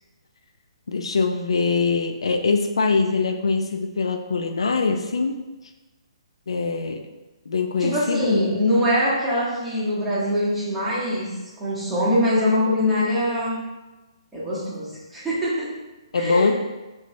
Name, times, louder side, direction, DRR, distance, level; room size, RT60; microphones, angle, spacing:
voice 1, 0.9-5.4 6.5-7.0 7.5-8.4 16.1-16.5, left 4 dB, 65° left, 5 dB, 0.3 m, -23 dB
voice 2, 7.8-13.6 14.3-15.8 16.1-16.5, left 1 dB, 5° right, -10 dB, 1.1 m, -23 dB
3.6 x 2.7 x 3.0 m, 1.1 s
figure-of-eight pair, 130°, 3 cm